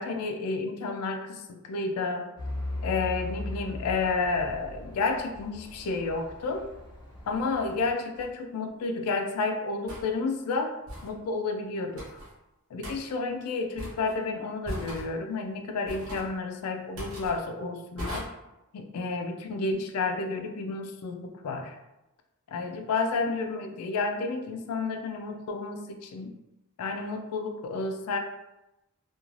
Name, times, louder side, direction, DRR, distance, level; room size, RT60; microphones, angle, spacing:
voice 1, 0.0-2.3 2.8-6.7 7.3-10.7 11.0-12.2 12.7-18.3 18.7-21.8 22.5-26.3 26.8-28.2, left 3 dB, 90° left, 4 dB, 0.4 m, -31 dB
Truck / Idling, 2.4-7.9, left 1 dB, 20° left, 0.7 m, -39 dB
sound 1, 8.2-8.3 9.9-10.1 10.9-11.1 12.0-12.3 12.8-13.0 13.8-14.2 14.6-15.1 15.9-16.3 17.0-17.4 18.0-18.2, equal, 65° right, 0.9 m, -38 dB
3.1 x 2.3 x 2.4 m, 0.96 s
head